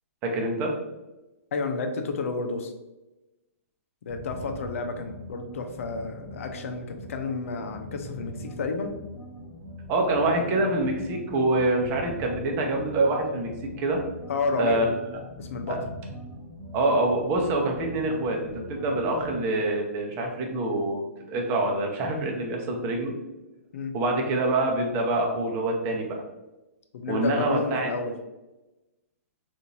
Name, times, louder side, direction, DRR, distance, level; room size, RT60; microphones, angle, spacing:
voice 1, 0.2-0.7 9.9-14.0 14.6-14.8 15.7-15.8 16.7-18.4 18.7-21.0 21.3-23.1 23.9-26.2 27.1-27.9, right 2 dB, 30° right, 1 dB, 0.8 m, -25 dB
voice 2, 1.5-2.7 4.1-8.9 14.3-14.9 15.4-15.8 23.7-23.9 26.9-28.1, left 4 dB, 65° left, 5 dB, 0.6 m, -31 dB
sound 1, 4.1-19.5, equal, 25° left, 1.2 m, -42 dB
3.7 x 2.6 x 2.8 m, 1.0 s
hypercardioid pair, 125°, 8 cm